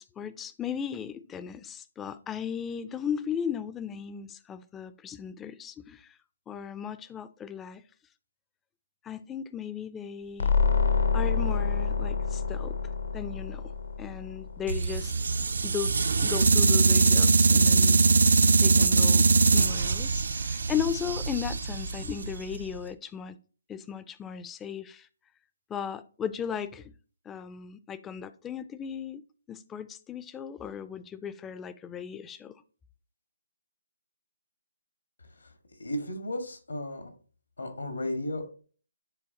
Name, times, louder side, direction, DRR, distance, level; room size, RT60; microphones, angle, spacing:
voice 1, 0.0-6.2 6.5-7.8 9.0-10.5 11.1-12.8 13.1-13.6 14.0-15.1 15.6-15.9 16.2-18.3 18.6-23.4 23.7-25.1 25.7-26.9 27.3-29.2 29.5-32.6, left 8 dB, 10° left, 0.3 m, -36 dB
sound 1, 10.4-15.1, left 5 dB, 70° left, 0.7 m, -27 dB
sound 2, 14.7-22.8, right 4 dB, 65° right, 0.4 m, -22 dB
voice 2, 35.2-35.5 35.8-37.1 37.6-38.5, left 1 dB, 85° left, 1.6 m, -34 dB
9.9 x 3.6 x 2.8 m
figure-of-eight pair, 150°, 0 cm